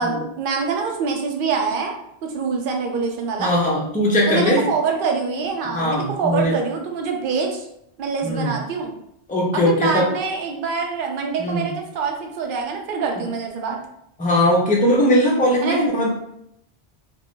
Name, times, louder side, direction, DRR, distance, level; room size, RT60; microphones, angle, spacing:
voice 1, 0.0-1.9 2.2-3.5 4.3-7.7 8.0-8.9 9.5-13.8 15.6-15.9, right 5 dB, 60° right, 2 dB, 0.7 m, -25 dB
voice 2, 3.4-4.6 5.7-6.6 8.2-8.6 9.3-10.1 11.4-11.7 14.2-16.1, left 1 dB, 10° left, -3 dB, 0.4 m, -19 dB
2.5 x 2.3 x 3.6 m, 0.76 s
omnidirectional pair, 1.1 m